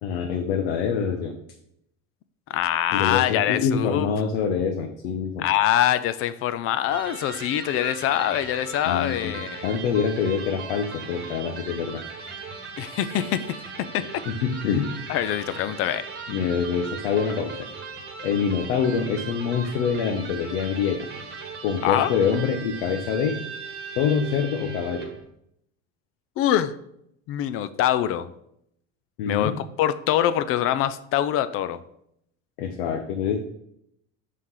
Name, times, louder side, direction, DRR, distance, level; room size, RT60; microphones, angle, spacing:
voice 1, 0.0-1.3 2.9-5.5 8.8-12.0 14.3-14.9 16.3-17.7 18.2-21.1 21.6-23.4 23.9-25.1 29.2-29.5 32.6-33.4, left 6 dB, 90° left, 4 dB, 0.8 m, -25 dB
voice 2, 2.5-4.1 5.4-9.6 12.8-13.6 13.9-14.1 15.1-16.0 21.8-22.1 26.4-26.7 27.3-28.3 29.3-29.5 29.8-31.8, left 11 dB, 45° left, 14 dB, 0.4 m, -24 dB
Electric guitar, 6.9-25.2, right 5 dB, 30° right, 1.2 m, -38 dB
5.6 x 3.2 x 5.6 m, 0.74 s
supercardioid pair, 130°, 32 cm